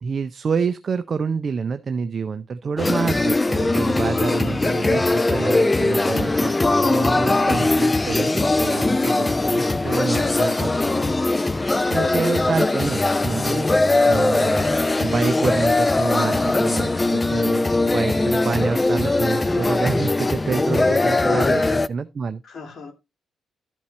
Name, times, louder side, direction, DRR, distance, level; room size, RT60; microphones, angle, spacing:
voice 1, 0.0-11.2 11.9-13.7 14.1-14.7 15.0-22.4, right 5 dB, 45° right, 0.5 m, -27 dB
sound 1, 2.8-21.9, left 2 dB, 20° left, 0.5 m, -20 dB
voice 2, 4.2-4.5 10.2-10.4 11.9-12.2 20.8-21.6 22.4-22.9, left 4 dB, 50° left, 2.6 m, -31 dB
13.0 x 4.6 x 4.1 m
cardioid pair, 90°, 0 cm